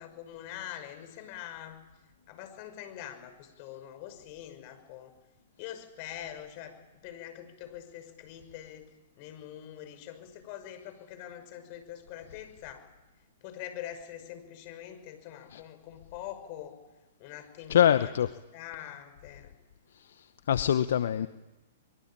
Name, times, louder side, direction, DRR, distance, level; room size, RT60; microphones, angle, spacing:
voice 1, 0.0-1.8 2.3-5.1 5.6-6.7 7.0-8.9 9.2-12.9 13.4-16.8 17.2-18.1 18.5-19.5 21.1-21.3, left 11 dB, 45° left, 9 dB, 5.7 m, -44 dB
voice 2, 17.7-18.3 20.2-21.3, left 10 dB, 70° left, 13 dB, 0.9 m, -24 dB
24.5 x 22.5 x 8.9 m, 1.1 s
hypercardioid pair, 120°, 0 cm